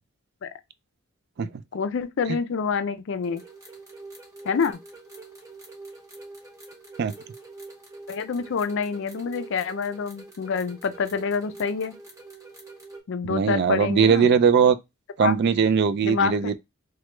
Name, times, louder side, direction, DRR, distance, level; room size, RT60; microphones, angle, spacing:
voice 1, 1.7-3.4 4.4-4.8 8.1-11.9 13.1-14.3 15.2-15.3 16.0-16.5, left 5 dB, 60° left, 0.4 m, -27 dB
sound 1, 3.2-13.0, right 3 dB, 15° right, 0.8 m, -45 dB
voice 2, 13.2-14.8 15.2-16.5, right 6 dB, 50° right, 0.3 m, -20 dB
3.0 x 2.2 x 3.2 m
head